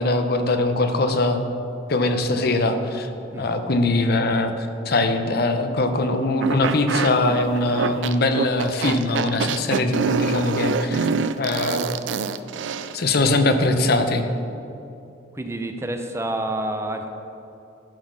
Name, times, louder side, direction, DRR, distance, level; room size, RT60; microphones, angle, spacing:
voice 1, 0.0-1.4 1.9-3.1 3.4-11.1 11.4-11.9 12.9-14.3, left 2 dB, 55° left, 7 dB, 0.7 m, -22 dB
sound 1, 6.4-13.0, right 5 dB, 80° right, 0.4 m, -25 dB
voice 2, 15.3-17.1, right 1 dB, 15° right, 5 dB, 0.5 m, -28 dB
12.0 x 4.4 x 6.1 m, 2.7 s
head